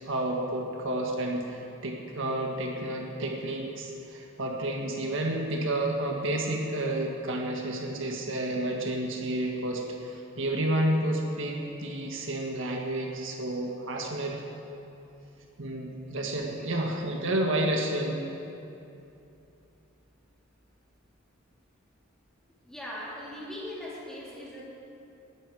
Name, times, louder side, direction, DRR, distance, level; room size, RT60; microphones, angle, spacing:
voice 1, 0.1-14.3 15.6-18.3, right 1 dB, 65° right, 0 dB, 1.7 m, -30 dB
voice 2, 22.6-24.6, left 1 dB, 5° left, -7 dB, 3.4 m, -39 dB
20.0 x 12.0 x 4.9 m, 2.8 s
head